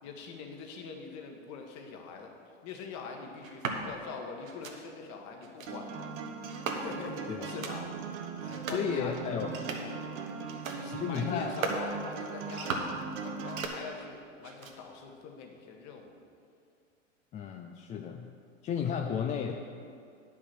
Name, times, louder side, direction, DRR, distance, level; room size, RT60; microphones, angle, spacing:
voice 1, 0.0-2.3 2.6-6.2 6.7-7.9 8.4-10.2 10.7-12.9 13.2-16.2, left 5 dB, 45° left, 3 dB, 1.6 m, -44 dB
sound 1, 3.4-3.8 4.4-4.8 5.4-5.7 6.5-7.1 7.4-7.8 8.4-8.9 9.4-10.0 10.4-10.8 11.4-11.9 12.4-13.0 13.4-14.1 14.4-15.0, right 4 dB, 85° right, 1.3 m, -38 dB
Acoustic guitar, 5.7-13.7, right 5 dB, 60° right, 1.3 m, -39 dB
voice 2, 8.7-9.6 10.9-11.5 17.3-18.3 18.6-19.6, left 7 dB, 20° left, 4 dB, 0.4 m, -33 dB
9.6 x 6.2 x 6.1 m, 2.3 s
hypercardioid pair, 100°, 39 cm